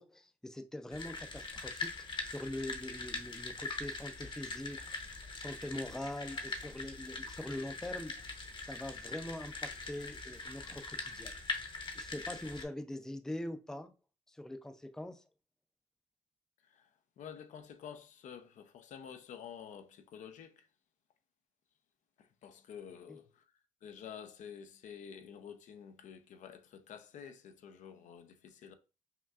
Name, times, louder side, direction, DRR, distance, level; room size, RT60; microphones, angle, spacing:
voice 1, 0.0-4.8 5.3-8.3 8.6-11.7 11.9-13.9 14.3-15.2 23.1-23.2, left 1 dB, 5° left, 0.4 m, -43 dB
sound 1, 0.9-12.6, left 3 dB, 40° left, 0.9 m, -42 dB
voice 2, 17.2-20.7 22.2-23.4 23.8-28.7, left 8 dB, 65° left, 0.5 m, -50 dB
5.7 x 2.3 x 2.4 m
supercardioid pair, 70°, 13 cm